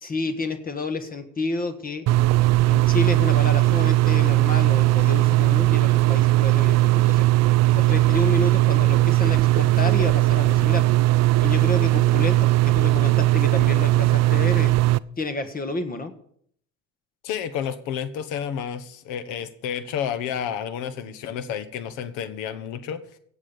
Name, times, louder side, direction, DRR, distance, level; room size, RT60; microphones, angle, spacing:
voice 1, 0.0-2.1 2.7-7.2 7.7-10.8 11.4-12.4 12.7-14.7 15.2-16.1, left 2 dB, 30° left, 9 dB, 1.5 m, -29 dB
sound 1, 2.1-15.0, right 17 dB, 60° right, 0.5 m, -18 dB
voice 2, 17.2-23.0, left 8 dB, 90° left, 13 dB, 1.2 m, -30 dB
16.5 x 7.4 x 6.8 m, 0.66 s
cardioid pair, 95°, 29 cm